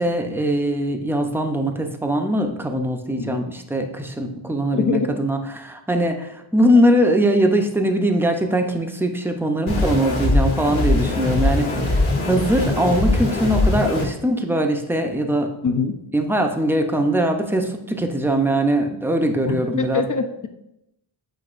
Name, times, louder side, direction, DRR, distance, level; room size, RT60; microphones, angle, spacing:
voice 1, 0.0-11.7 12.2-15.5 16.1-20.0, right 1 dB, 5° right, 4 dB, 0.5 m, -21 dB
voice 2, 4.7-5.1 11.1-11.2 15.6-16.0 19.5-20.5, left 5 dB, 40° left, 7 dB, 0.6 m, -24 dB
sound 1, 9.7-14.1, left 2 dB, 80° left, 1.6 m, -21 dB
7.9 x 5.1 x 2.5 m, 0.85 s
wide cardioid pair, 115°, 50 cm